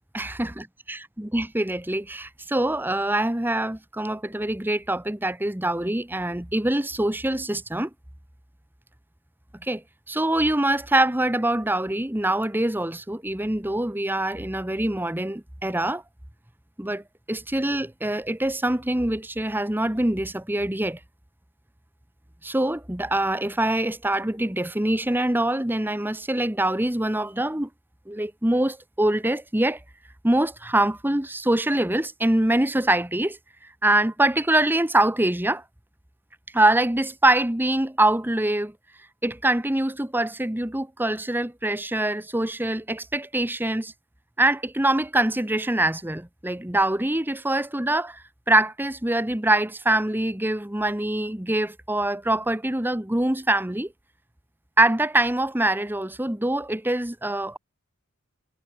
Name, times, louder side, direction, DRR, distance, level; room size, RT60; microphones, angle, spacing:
voice 1, 0.1-7.9 9.6-9.8 10.1-16.0 16.8-21.0 22.4-27.7 28.1-29.8 30.2-33.4 33.8-35.6 36.5-38.7 39.2-43.9 44.4-53.9 54.8-57.6, right 1 dB, 10° right, 1.0 m, -24 dB
head